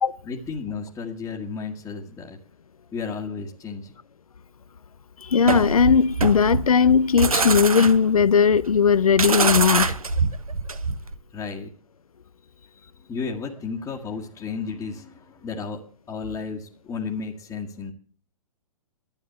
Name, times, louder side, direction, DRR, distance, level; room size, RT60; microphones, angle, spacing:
voice 1, 0.2-2.4 2.9-3.9 11.3-11.7 13.1-15.8 16.1-17.9, left 5 dB, 15° left, 1.7 m, -33 dB
voice 2, 5.2-9.9, left 6 dB, 80° left, 0.6 m, -18 dB
sound 1, 5.4-11.1, right 4 dB, 85° right, 1.2 m, -24 dB
12.5 x 9.1 x 7.9 m
figure-of-eight pair, 120°, 18 cm